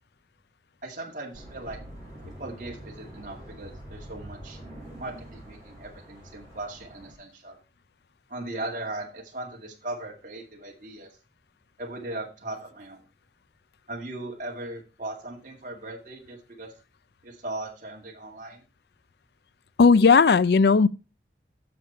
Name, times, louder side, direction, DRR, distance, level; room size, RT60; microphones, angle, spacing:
voice 1, 0.8-1.8 2.2-4.6 5.0-7.6 8.3-11.1 11.8-13.0 13.9-16.7 17.2-18.6, right 2 dB, 45° right, 2.2 m, -38 dB
sound 1, 1.3-7.1, right 1 dB, 20° left, 5.0 m, -45 dB
voice 2, 19.8-20.9, left 5 dB, 65° left, 0.4 m, -16 dB
8.5 x 6.9 x 4.3 m
head